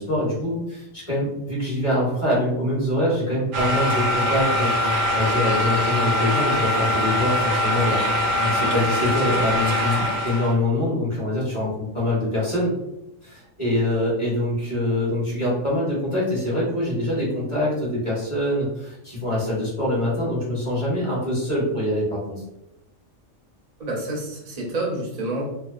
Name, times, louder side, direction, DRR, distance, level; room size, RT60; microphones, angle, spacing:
voice 1, 0.0-12.7 13.2-22.4, left 1 dB, 25° left, -7 dB, 1.1 m, -24 dB
sound 1, 3.5-10.5, left 1 dB, 70° right, 0.8 m, -22 dB
voice 2, 23.8-25.5, right 2 dB, 40° right, -2 dB, 0.6 m, -28 dB
2.8 x 2.1 x 2.4 m, 0.88 s
omnidirectional pair, 1.3 m